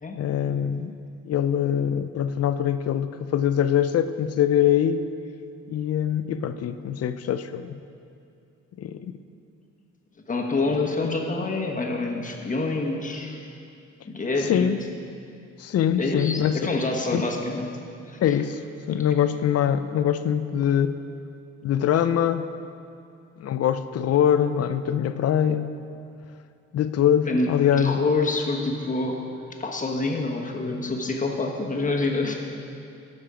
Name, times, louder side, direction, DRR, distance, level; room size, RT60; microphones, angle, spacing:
voice 1, 0.2-0.9 1.2-5.1 5.7-7.8 8.8-9.2 14.5-14.8 15.6-16.7 17.1-17.2 18.2-18.6 18.9-21.0 21.6-22.5 23.4-25.7 26.7-28.0, left 9 dB, 55° left, 11 dB, 0.5 m, -23 dB
voice 2, 10.3-13.4 14.0-14.7 16.0-17.7 18.1-18.4 27.3-27.5 27.8-29.2 29.6-32.3, left 3 dB, 25° left, 0 dB, 1.3 m, -26 dB
12.5 x 5.4 x 5.0 m, 2.5 s
cardioid pair, 90°, 30 cm